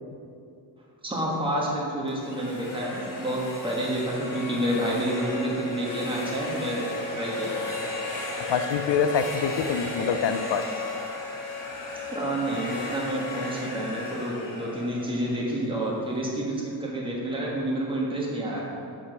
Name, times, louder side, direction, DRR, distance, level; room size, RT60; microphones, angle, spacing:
voice 1, 1.0-7.5 12.1-18.7, right 1 dB, 10° right, -4 dB, 1.6 m, -29 dB
sound 1, 2.1-15.9, left 2 dB, 50° left, 2.0 m, -35 dB
voice 2, 8.4-10.6, left 6 dB, 75° left, 9 dB, 0.7 m, -25 dB
8.6 x 5.0 x 6.2 m, 2.5 s
wide cardioid pair, 135°, 42 cm